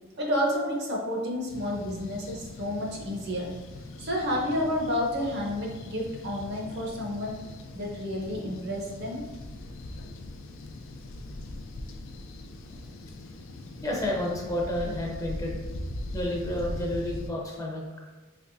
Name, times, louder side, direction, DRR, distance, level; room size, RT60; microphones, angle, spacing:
voice 1, 0.2-3.5 4.0-7.4 7.7-9.3, left 1 dB, 55° right, -1 dB, 0.8 m, -30 dB
sound 1, 1.5-17.3, left 1 dB, 75° left, 0.4 m, -41 dB
voice 2, 13.8-15.6 16.1-18.0, left 1 dB, 15° left, -2 dB, 0.5 m, -30 dB
3.5 x 3.0 x 2.6 m, 1.2 s
head